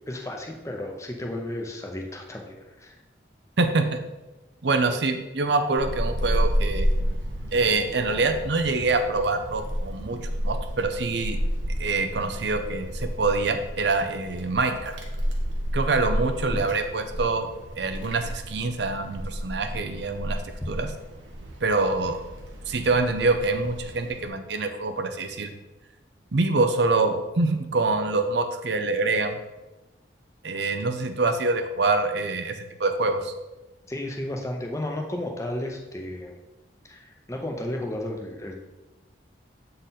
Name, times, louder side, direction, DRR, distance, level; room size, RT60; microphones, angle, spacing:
voice 1, 0.1-3.0 16.5-16.6 33.9-36.4 36.8-38.6, left 1 dB, 15° left, 2 dB, 0.7 m, -33 dB
voice 2, 3.6-4.0 4.6-6.9 7.5-10.2 10.4-11.4 11.8-15.0 15.7-17.5 17.8-20.4 20.7-20.9 21.6-22.2 22.7-25.5 26.3-29.4 30.4-33.3, right 3 dB, 70° right, 7 dB, 0.6 m, -25 dB
Wind, 5.8-24.3, equal, 85° right, 1.1 m, -31 dB
7.9 x 3.9 x 4.1 m, 1.1 s
head